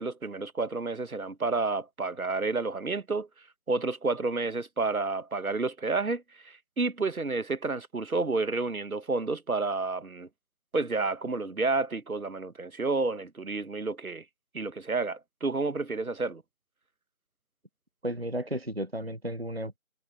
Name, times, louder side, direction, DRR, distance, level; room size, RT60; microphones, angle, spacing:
voice 1, 0.0-10.3 10.7-14.2 14.5-16.4, right 3 dB, 80° right, 1.2 m, -30 dB
voice 2, 18.0-19.8, right 1 dB, 45° right, 0.6 m, -33 dB
figure-of-eight pair, 180°, 42 cm